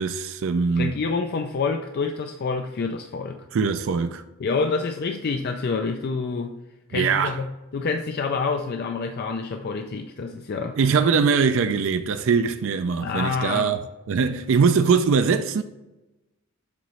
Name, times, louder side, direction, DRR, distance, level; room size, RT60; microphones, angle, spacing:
voice 1, 0.0-1.0 3.5-4.2 6.9-7.4 10.8-13.8 14.1-15.6, right 5 dB, 60° right, 0.4 m, -22 dB
voice 2, 0.8-3.4 4.4-6.6 6.9-7.5 7.7-10.8 13.0-13.8, left 4 dB, 45° left, 0.4 m, -27 dB
7.6 x 3.0 x 5.5 m
head